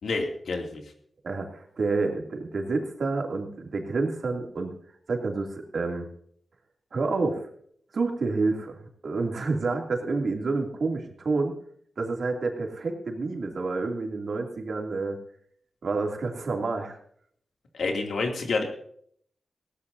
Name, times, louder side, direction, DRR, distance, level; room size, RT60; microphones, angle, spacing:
voice 1, 0.0-0.8 17.7-18.6, left 3 dB, 80° left, 2 dB, 2.6 m, -28 dB
voice 2, 1.2-4.7 5.1-6.1 6.9-7.4 7.9-8.8 9.0-11.5 12.0-15.2 15.8-16.9, right 3 dB, 65° right, 2 dB, 2.7 m, -28 dB
19.0 x 17.0 x 2.7 m, 0.64 s
wide cardioid pair, 95°, 0 cm